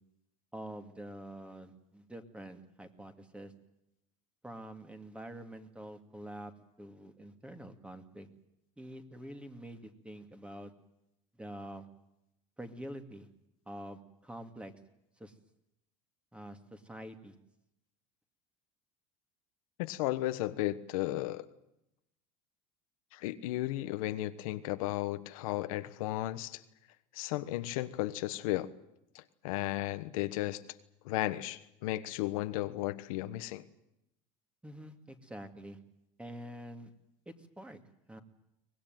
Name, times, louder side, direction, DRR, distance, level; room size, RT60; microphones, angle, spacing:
voice 1, 0.5-3.5 4.4-6.5 6.8-8.3 8.8-10.7 11.4-11.9 12.6-13.3 13.7-14.7 15.2-15.3 16.3-17.3 34.6-35.8 36.2-36.9 37.3-37.8 38.1-38.2, right 1 dB, 5° right, 8 dB, 2.3 m, -46 dB
voice 2, 19.8-21.5 23.1-26.6 27.1-28.7 29.1-30.6 31.0-33.6, left 16 dB, 85° left, 11 dB, 1.3 m, -34 dB
23.5 x 19.0 x 9.2 m, 0.84 s
supercardioid pair, 115°, 17 cm